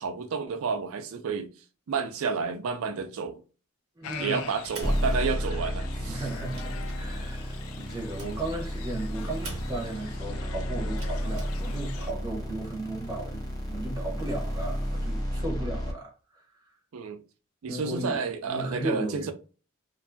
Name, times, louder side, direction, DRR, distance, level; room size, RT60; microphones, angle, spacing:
voice 1, 0.0-1.5 1.9-3.4 4.2-6.2 16.9-17.2 17.6-19.3, right 5 dB, 70° right, 0.4 m, -30 dB
voice 2, 3.9-4.4 5.4-5.7 6.1-13.4 13.7-16.8 17.7-18.2 18.4-19.3, right 2 dB, 20° right, 0.8 m, -35 dB
sound 1, 4.0-12.1, left 7 dB, 75° left, 0.3 m, -44 dB
sound 2, 4.6-5.8 6.2-10.1 10.8-11.4, right 3 dB, 90° right, 0.9 m, -44 dB
sound 3, 4.8-15.9, equal, 15° left, 0.7 m, -32 dB
2.5 x 2.3 x 2.5 m
head